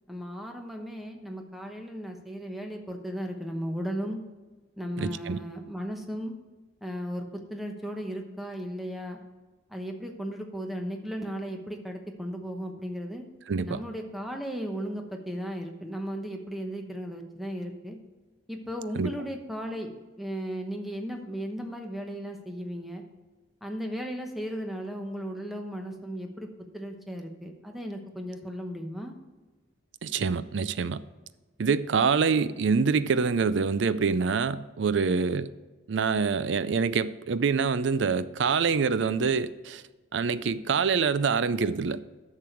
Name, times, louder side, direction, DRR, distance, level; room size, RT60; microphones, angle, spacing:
voice 1, 0.1-4.2 4.8-6.3 6.8-9.2 9.7-13.2 13.6-18.0 18.5-23.0 23.6-26.5 26.7-29.1, equal, ahead, 3 dB, 0.9 m, -36 dB
voice 2, 5.0-5.4 13.5-13.8 18.9-19.1 30.0-31.0 31.6-35.5 35.9-39.8 40.1-42.0, right 5 dB, 65° right, 15 dB, 0.4 m, -26 dB
10.5 x 6.7 x 4.6 m, 1.3 s
head